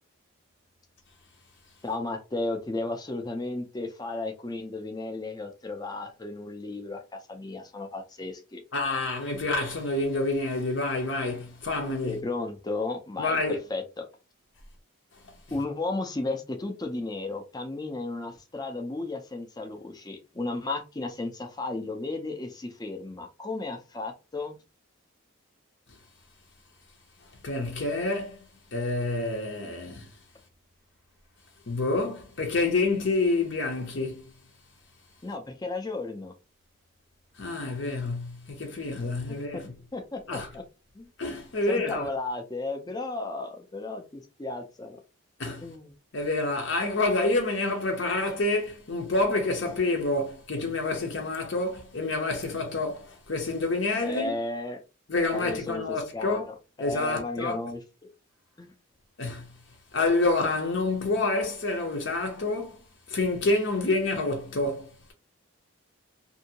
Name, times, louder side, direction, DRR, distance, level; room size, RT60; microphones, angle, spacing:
voice 1, 1.8-8.6 12.1-14.1 15.5-24.6 35.2-36.3 39.3-39.6 39.9-40.6 40.9-41.1 41.7-45.0 45.6-45.9 54.0-54.8 55.3-57.8 58.6-58.7, left 2 dB, 20° left, 0.5 m, -34 dB
voice 2, 8.7-12.2 13.2-13.6 27.4-30.1 31.7-34.2 37.4-39.6 40.3-40.5 41.2-42.1 45.4-45.7 46.1-54.3 55.1-56.5 56.8-57.6 59.2-59.5 59.9-62.8 63.1-65.1, left 2 dB, 60° left, 0.7 m, -28 dB
2.7 x 2.7 x 2.8 m
head